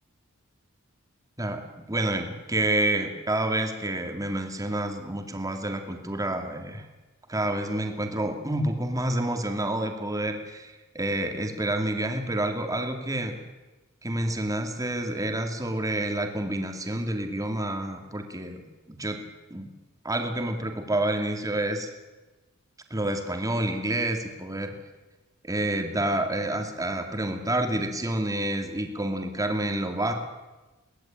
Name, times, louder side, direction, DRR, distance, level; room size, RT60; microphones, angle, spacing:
voice 1, 1.4-6.9 7.3-13.4 14.0-19.2 19.5-19.7 20.0-21.9 22.9-24.7 25.4-30.1, right 1 dB, 15° right, 5 dB, 2.6 m, -28 dB
22.5 x 18.0 x 9.0 m, 1.1 s
head